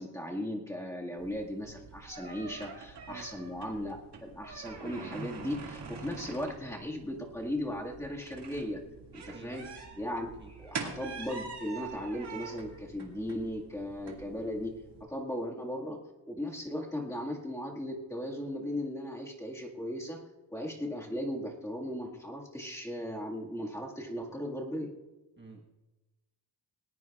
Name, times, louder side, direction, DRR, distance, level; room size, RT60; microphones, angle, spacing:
voice 1, 0.0-8.8 9.1-9.7 10.0-14.8 15.1-16.0 16.3-24.9, left 1 dB, 5° left, -2 dB, 1.8 m, -37 dB
sound 1, 1.2-15.0, right 5 dB, 75° right, 2.2 m, -45 dB
voice 2, 3.1-3.4 9.3-9.5 10.4-10.5 25.4-25.6, right 3 dB, 25° right, -1 dB, 1.4 m, -50 dB
20.5 x 18.5 x 2.4 m, 1.1 s
wide cardioid pair, 170°, 40 cm